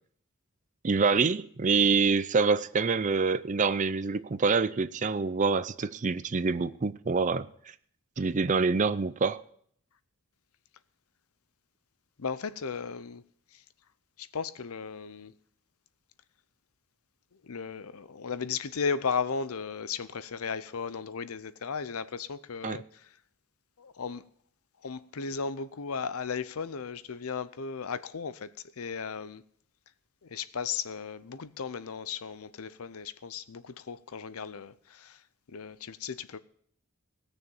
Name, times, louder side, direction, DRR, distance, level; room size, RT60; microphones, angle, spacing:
voice 1, 0.8-7.5 8.2-9.4 22.6-22.8, right 4 dB, 35° right, 0.5 m, -26 dB
voice 2, 12.2-13.2 13.5-13.6 14.2-15.3 17.4-23.1 23.8-24.2 24.8-29.4 30.2-35.2 35.5-36.4, left 5 dB, 85° left, 0.7 m, -35 dB
17.5 x 6.6 x 7.1 m
head